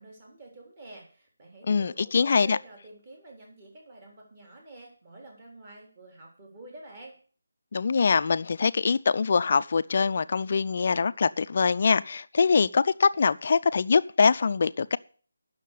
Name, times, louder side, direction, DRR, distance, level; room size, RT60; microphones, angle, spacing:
voice 1, 0.0-7.1, right 2 dB, 25° right, 3.8 m, -48 dB
voice 2, 1.7-2.6 7.7-15.0, left 5 dB, 45° left, 0.4 m, -23 dB
9.3 x 6.5 x 8.3 m
figure-of-eight pair, 170°, 0 cm